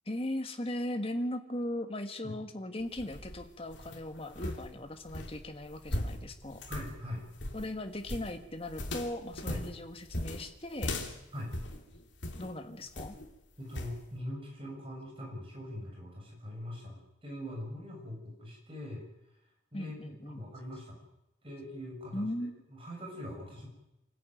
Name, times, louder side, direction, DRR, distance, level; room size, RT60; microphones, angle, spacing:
voice 1, 0.0-6.7 7.5-11.0 12.4-13.2 19.7-20.4 22.1-22.6, left 1 dB, 30° left, 6 dB, 1.7 m, -38 dB
sound 1, 2.8-12.5 12.9-13.3 13.7-14.0, left 1 dB, 65° left, 3.0 m, -39 dB
voice 2, 6.7-7.2 9.5-9.6 11.3-11.5 13.6-19.1 19.7-21.0 21.4-22.3 22.7-23.7, left 1 dB, 30° right, 0 dB, 6.7 m, -42 dB
25.0 x 13.5 x 9.2 m, 0.90 s
head